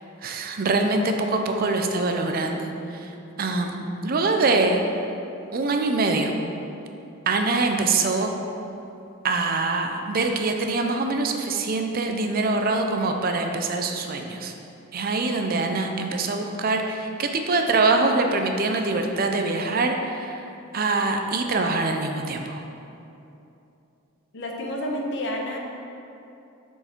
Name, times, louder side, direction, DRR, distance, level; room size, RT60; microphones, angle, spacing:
voice 1, 0.2-2.7 3.4-4.8 5.5-6.3 7.3-8.3 9.2-14.5 14.9-20.4 20.7-22.6, right 3 dB, 40° right, 4 dB, 0.5 m, -24 dB
voice 2, 24.3-25.6, left 1 dB, 55° left, 0 dB, 0.9 m, -29 dB
7.7 x 4.6 x 4.4 m, 2.8 s
head